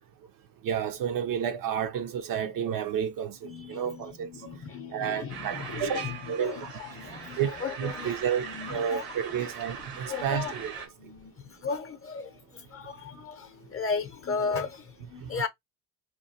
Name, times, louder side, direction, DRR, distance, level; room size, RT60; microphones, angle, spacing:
voice 1, 0.6-4.3 4.9-6.0 6.3-6.7 7.4-10.7 15.2-15.4, right 8 dB, 50° right, 0.5 m, -31 dB
voice 2, 3.4-9.0 9.4-9.5 10.1-10.5 11.0-15.5, left 5 dB, 30° left, 0.7 m, -36 dB
sound 1, 5.3-10.9, right 6 dB, 80° right, 1.1 m, -41 dB
2.9 x 2.2 x 2.7 m
hypercardioid pair, 60°, 43 cm